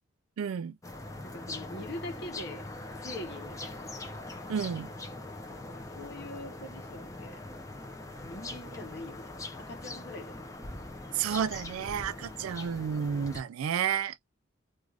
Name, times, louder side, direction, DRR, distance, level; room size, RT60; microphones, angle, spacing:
voice 1, 0.4-0.8 4.5-4.9 11.1-14.2, right 8 dB, 85° right, 0.3 m, -31 dB
sound 1, 0.8-13.4, left 2 dB, 15° left, 0.5 m, -42 dB
voice 2, 1.2-2.7 3.0-3.9 5.5-7.4 8.2-9.3 9.6-10.4, left 1 dB, 50° left, 0.9 m, -43 dB
2.5 x 2.3 x 3.1 m
head